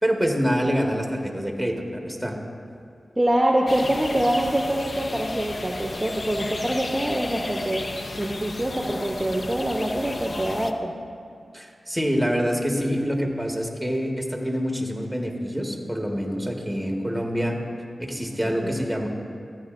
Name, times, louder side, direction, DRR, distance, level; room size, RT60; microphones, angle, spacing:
voice 1, 0.0-2.3 11.5-17.6 18.0-19.1, equal, ahead, 1 dB, 1.4 m, -26 dB
voice 2, 3.2-11.0 18.6-18.8, right 1 dB, 20° right, 0 dB, 0.8 m, -25 dB
sound 1, 3.7-10.7, left 2 dB, 55° left, 0.5 m, -34 dB
14.0 x 9.7 x 2.5 m, 2.3 s
cardioid pair, 40°, 0 cm